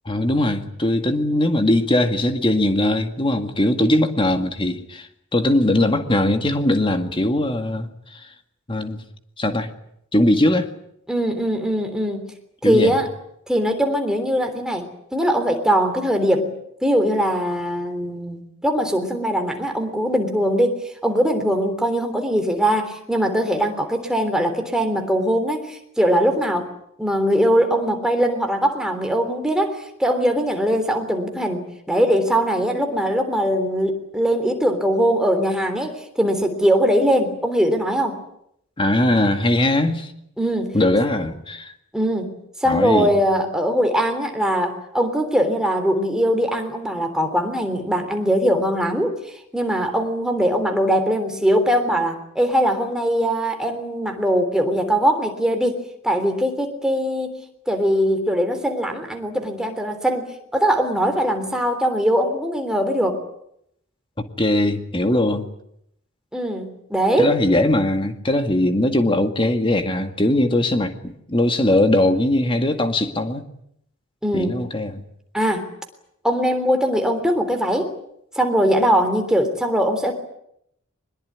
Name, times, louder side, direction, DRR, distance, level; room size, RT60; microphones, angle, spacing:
voice 1, 0.1-8.2 8.7-9.0 9.4-9.7 10.1-10.7 12.6-13.0 38.8-40.1 40.7-41.7 42.7-43.1 64.4-65.5 67.2-73.4 74.3-75.0, left 1 dB, 25° left, 7 dB, 2.0 m, -20 dB
voice 2, 11.1-12.3 12.6-13.1 13.5-14.9 15.1-16.5 16.8-20.8 21.0-26.7 27.0-38.2 40.4-40.7 41.9-57.4 57.7-63.2 66.3-67.3 74.2-74.6 75.3-75.6 76.2-77.9 78.3-80.1, equal, 5° right, 4 dB, 3.4 m, -21 dB
23.0 x 21.0 x 9.5 m, 0.75 s
head